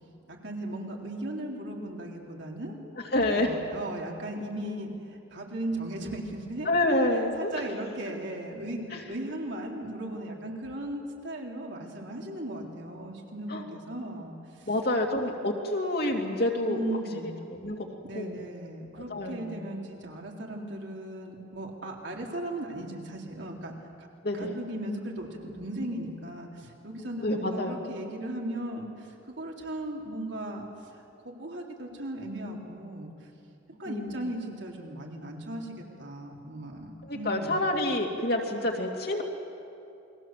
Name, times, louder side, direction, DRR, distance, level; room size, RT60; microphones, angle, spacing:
voice 1, 0.3-2.8 3.3-4.9 5.3-6.7 7.4-14.3 14.6-14.7 16.7-17.4 18.0-23.7 24.3-30.6 31.2-33.1 33.8-37.6, right 1 dB, 65° right, -1 dB, 3.7 m, -37 dB
voice 2, 3.1-3.5 6.6-7.6 13.5-13.6 14.7-16.8 17.5-17.9 18.1-18.4 19.1-19.6 24.2-24.5 27.2-27.8 33.9-34.1 37.0-39.2, left 1 dB, 55° left, 2 dB, 2.7 m, -28 dB
29.0 x 22.0 x 7.6 m, 2.7 s
head